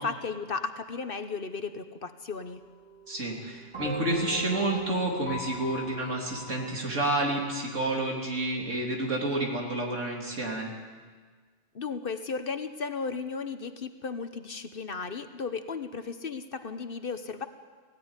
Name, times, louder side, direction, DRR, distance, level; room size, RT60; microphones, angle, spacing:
voice 1, 0.0-2.6 11.7-17.5, left 5 dB, 50° left, 9 dB, 1.1 m, -35 dB
sound 1, 2.3-8.5, left 1 dB, 25° right, 4.1 m, -41 dB
voice 2, 3.1-10.7, right 1 dB, 80° right, 0 dB, 3.5 m, -29 dB
16.5 x 16.5 x 9.7 m, 1.5 s
omnidirectional pair, 1.3 m